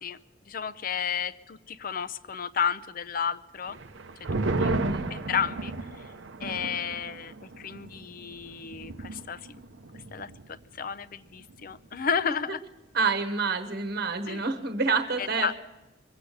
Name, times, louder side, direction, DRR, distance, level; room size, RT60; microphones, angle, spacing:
voice 1, 0.5-3.8 4.3-4.7 5.1-5.7 6.4-9.4 10.1-12.6 14.3-14.4 15.2-15.5, left 7 dB, 50° left, 13 dB, 0.6 m, -32 dB
sound 1, 3.7-10.6 10.9-11.0 11.4-11.9, right 3 dB, 85° right, 0.7 m, -34 dB
voice 2, 4.6-5.1 12.9-15.5, right 4 dB, 60° right, 6 dB, 1.1 m, -28 dB
23.0 x 8.3 x 6.5 m, 1.1 s
head